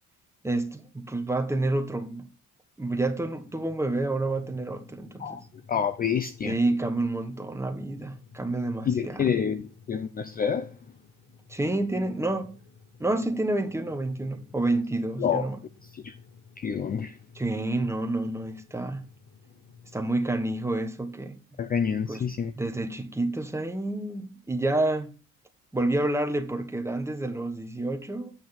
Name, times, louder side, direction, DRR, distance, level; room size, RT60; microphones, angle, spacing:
voice 1, 0.4-2.3 2.8-5.5 6.4-9.3 11.5-12.6 13.0-15.6 17.3-19.0 19.9-21.4 22.1-22.2 22.5-25.1 25.7-28.3, right 2 dB, 10° right, 1.1 m, -29 dB
sound 1, 3.1-20.0, left 5 dB, 75° left, 3.9 m, -53 dB
voice 2, 5.7-6.6 8.9-10.7 15.2-15.4 15.9-16.1 16.6-17.2 21.6-22.5, left 7 dB, 30° left, 0.5 m, -28 dB
8.8 x 6.1 x 4.1 m
cardioid pair, 115°, 31 cm